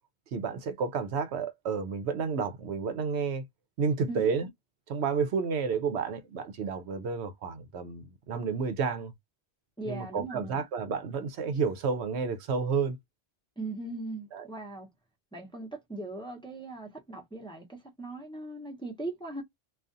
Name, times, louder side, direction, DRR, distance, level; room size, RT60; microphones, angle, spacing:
voice 1, 0.3-3.4 3.8-4.5 4.9-9.1 9.9-13.0 14.3-14.4, right 5 dB, 80° right, 0.9 m, -31 dB
voice 2, 9.8-10.6 13.6-14.9 15.3-19.4, right 2 dB, 5° left, 0.7 m, -39 dB
2.4 x 2.3 x 2.5 m
omnidirectional pair, 1.1 m